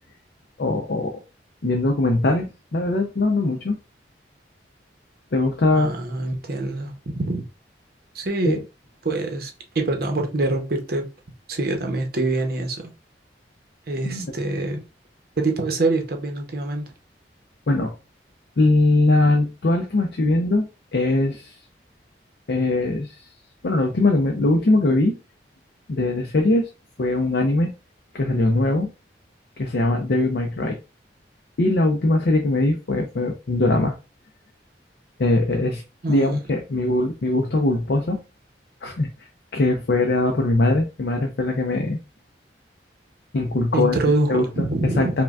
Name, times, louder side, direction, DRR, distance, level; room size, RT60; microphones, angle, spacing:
voice 1, 0.6-1.2 1.6-3.8 5.3-5.9 8.5-8.6 14.0-14.3 17.7-17.9 18.6-21.5 22.5-23.2 23.6-25.2 25.9-26.7 27.0-27.7 28.1-28.9 29.6-30.8 31.6-33.9 35.2-35.8 36.1-38.2 38.8-39.1 39.5-42.0 43.3-44.0 44.3-45.2, left 2 dB, 60° left, 0.5 m, -21 dB
voice 2, 5.7-7.5 8.1-8.6 9.0-11.1 11.5-12.8 13.9-14.8 15.4-16.9 36.0-36.4 43.7-45.2, right 2 dB, 55° right, 0.7 m, -25 dB
5.0 x 2.2 x 2.3 m
head